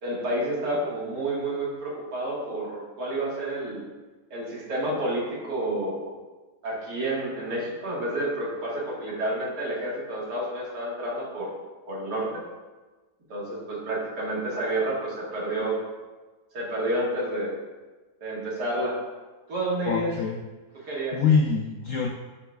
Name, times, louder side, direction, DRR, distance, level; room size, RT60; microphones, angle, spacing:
voice 1, 0.0-3.8 4.3-6.1 6.6-11.5 11.9-12.4 13.3-15.8 16.5-17.6 18.2-19.0 19.5-20.1 20.8-21.2, right 1 dB, 70° right, -5 dB, 2.2 m, -29 dB
voice 2, 19.8-20.4 20.8-22.1, left 5 dB, 70° left, 1 dB, 0.7 m, -25 dB
12.0 x 4.6 x 2.3 m, 1.3 s
omnidirectional pair, 1.9 m